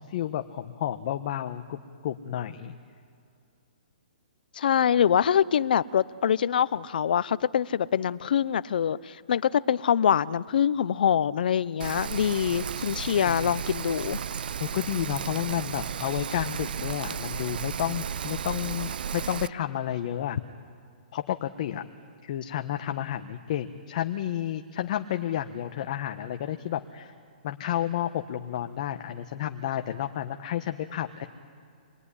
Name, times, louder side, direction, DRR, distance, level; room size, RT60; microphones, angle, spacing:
voice 1, 0.0-1.8 2.0-2.7 13.2-13.5 14.6-20.4 21.1-21.8 22.2-27.1 27.4-31.3, left 11 dB, 45° left, 6 dB, 1.2 m, -31 dB
voice 2, 4.6-14.2, left 8 dB, 65° left, 18 dB, 0.7 m, -24 dB
Rain, 11.8-19.5, right 7 dB, 70° right, 0.6 m, -34 dB
27.0 x 22.0 x 10.0 m, 2.4 s
hypercardioid pair, 155°, 5 cm